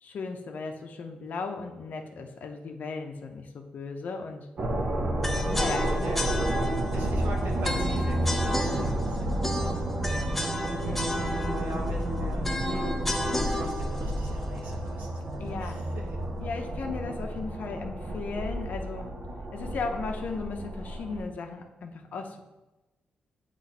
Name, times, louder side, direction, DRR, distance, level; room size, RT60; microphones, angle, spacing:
voice 1, 0.0-4.5 5.4-6.3 7.0-7.1 10.6-11.4 15.4-15.9 16.4-19.1 19.5-22.4, left 4 dB, 60° left, 3 dB, 0.6 m, -36 dB
sound 1, 4.6-21.2, right 1 dB, 40° right, 0.6 m, -31 dB
sound 2, 5.2-15.3, left 1 dB, 5° left, 0.5 m, -33 dB
voice 2, 6.0-9.4 9.6-10.3 10.7-13.0 13.6-15.1 15.6-16.0, right 2 dB, 85° right, -2 dB, 1.2 m, -41 dB
8.2 x 3.0 x 4.1 m, 1.1 s
wide cardioid pair, 140°, 3 cm